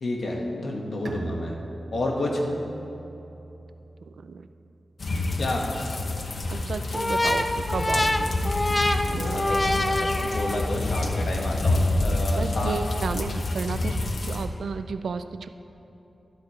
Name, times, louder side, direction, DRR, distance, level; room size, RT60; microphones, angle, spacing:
voice 1, 0.0-1.5 1.9-2.4 5.4-5.6 9.1-12.8, left 2 dB, 70° left, -1 dB, 1.6 m, -30 dB
Bowed string instrument, 1.0-4.5, right 3 dB, 55° right, 0.8 m, -40 dB
sound 1, 5.0-14.5, left 2 dB, 55° left, 0.8 m, -28 dB
voice 2, 6.5-8.5 9.1-9.5 9.8-9.9 12.4-14.0 14.3-15.5, right 5 dB, 90° right, 10 dB, 0.4 m, -32 dB
sound 2, 6.9-10.8, left 1 dB, 20° left, 0.4 m, -26 dB
12.0 x 12.0 x 3.2 m, 3.0 s
wide cardioid pair, 125°, 0 cm